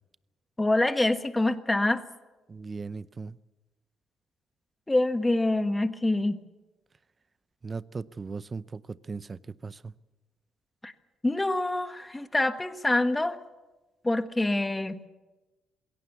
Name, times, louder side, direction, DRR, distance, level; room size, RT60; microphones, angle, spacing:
voice 1, 0.6-2.0 4.9-6.4 10.8-10.9 11.2-13.4 14.0-15.0, left 2 dB, 15° left, 1.4 m, -26 dB
voice 2, 2.5-3.4 7.6-9.9, right 4 dB, 30° right, 0.7 m, -38 dB
21.5 x 17.0 x 8.2 m
cardioid pair, 90°, 0 cm